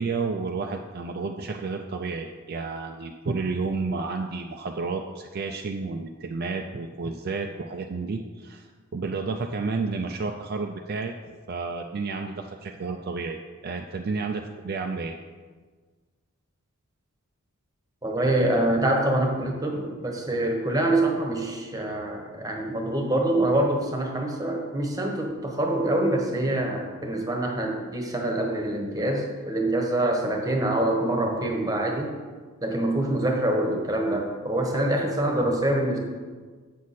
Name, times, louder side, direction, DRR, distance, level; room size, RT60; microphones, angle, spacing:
voice 1, 0.0-11.1 11.5-15.2, right 4 dB, 45° right, 3 dB, 0.4 m, -31 dB
voice 2, 18.0-32.1 32.6-36.0, right 1 dB, 15° right, 1 dB, 1.0 m, -25 dB
8.3 x 6.3 x 4.2 m, 1.5 s
head